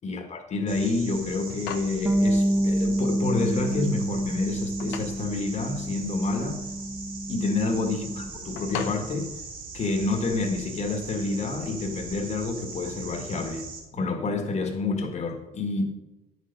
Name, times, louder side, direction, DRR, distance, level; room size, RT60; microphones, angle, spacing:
voice 1, 0.0-6.6 7.3-9.3 9.7-13.7 13.9-15.9, left 3 dB, 40° left, 1.7 m, -28 dB
sound 1, 0.7-13.8, right 4 dB, 60° right, 3.6 m, -40 dB
sound 2, 1.5-10.2, left 9 dB, 90° left, 0.9 m, -42 dB
Bass guitar, 2.1-8.3, right 1 dB, 5° right, 0.8 m, -28 dB
10.0 x 6.7 x 5.3 m
cardioid pair, 110°, 17 cm